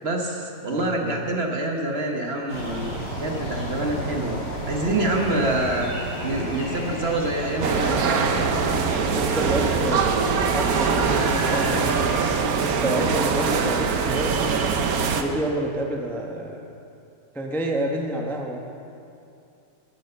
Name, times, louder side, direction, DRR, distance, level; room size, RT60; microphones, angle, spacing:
voice 1, 0.0-2.9 3.2-5.9 6.2-8.1, right 2 dB, 45° right, 1 dB, 1.2 m, -26 dB
voice 2, 0.7-1.2 5.5-5.6 9.1-12.1 12.6-14.5 15.2-16.8 17.3-18.6, right 1 dB, ahead, 0 dB, 0.8 m, -28 dB
sound 1, 2.5-12.3, equal, 65° left, 3.8 m, -32 dB
sound 2, 7.6-15.2, right 5 dB, 65° right, 1.3 m, -23 dB
14.0 x 8.7 x 6.9 m, 2.6 s
omnidirectional pair, 1.7 m